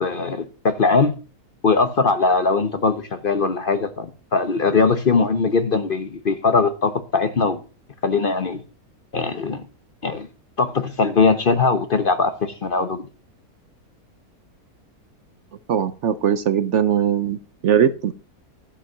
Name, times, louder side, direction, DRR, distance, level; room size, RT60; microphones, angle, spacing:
voice 1, 0.0-1.1 1.6-7.6 8.0-8.6 9.1-9.6 10.0-10.3 10.6-13.1, left 4 dB, 45° left, 0.8 m, -20 dB
voice 2, 15.7-17.4 17.6-18.1, right 8 dB, 60° right, 0.9 m, -20 dB
12.0 x 5.3 x 7.1 m
omnidirectional pair, 1.6 m